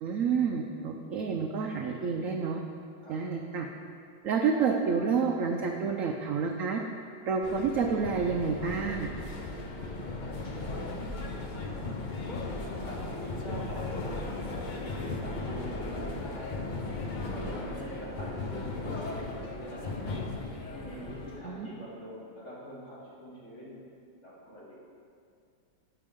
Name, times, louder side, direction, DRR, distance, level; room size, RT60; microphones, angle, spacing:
voice 1, 0.0-2.6 3.1-3.7 4.2-6.8 7.3-9.1 21.4-21.7, right 5 dB, 65° right, 2 dB, 0.8 m, -29 dB
sound 1, 7.4-21.4, left 2 dB, 65° left, 0.4 m, -37 dB
voice 2, 10.4-11.1 12.1-16.7 17.3-19.9 20.7-23.8 24.2-24.8, equal, 40° left, -9 dB, 3.1 m, -44 dB
15.0 x 6.0 x 3.7 m, 2.4 s
omnidirectional pair, 1.9 m